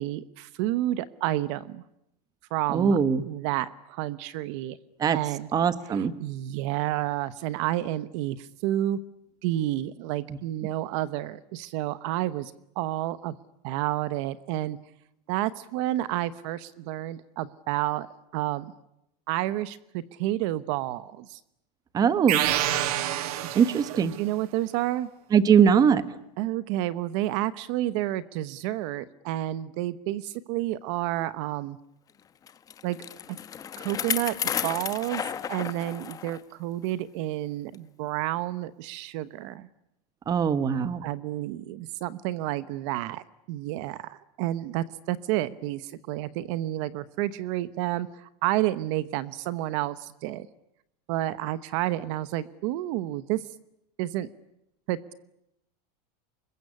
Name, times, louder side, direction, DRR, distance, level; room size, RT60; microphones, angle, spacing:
voice 1, 0.0-1.8 2.5-3.0 3.3-4.8 5.1-5.5 5.8-9.0 9.4-13.4 13.6-14.8 15.3-18.1 18.3-18.7 19.3-21.4 23.4-23.6 23.9-25.1 26.4-31.8 32.8-33.0 33.8-39.7 41.0-50.5 51.1-53.4 54.0-54.3 54.9-55.1, right 15 dB, 50° right, 16 dB, 1.0 m, -30 dB
voice 2, 2.7-3.2 5.0-5.2 5.5-6.1 21.9-22.4 23.5-24.1 25.3-26.0 40.3-41.0, right 7 dB, 20° right, 14 dB, 1.2 m, -21 dB
sound 1, 22.3-24.2, right 13 dB, 65° right, 2.0 m, -27 dB
Bicycle, 32.5-36.4 36.8-36.9 37.7-37.8, left 8 dB, 15° left, 1.0 m, -33 dB
26.0 x 22.0 x 9.8 m, 0.83 s
supercardioid pair, 165°, 21 cm